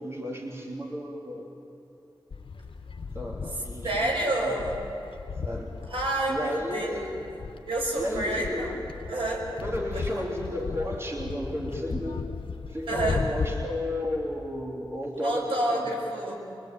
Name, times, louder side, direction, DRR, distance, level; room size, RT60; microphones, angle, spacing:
voice 1, 0.0-1.6 3.1-4.1 4.4-4.5 5.4-5.7 6.3-7.1 7.9-8.8 9.6-12.3 12.7-15.9, left 1 dB, 30° right, -1 dB, 3.1 m, -33 dB
sound 1, 2.3-13.7, left 4 dB, 80° left, 1.1 m, -36 dB
voice 2, 3.8-4.8 5.9-7.2 7.7-8.7 9.1-9.5 9.9-10.2 12.9-13.3 15.1-16.4, right 1 dB, 80° right, -1 dB, 5.6 m, -29 dB
24.0 x 23.0 x 9.2 m, 2.7 s
wide cardioid pair, 105°, 9 cm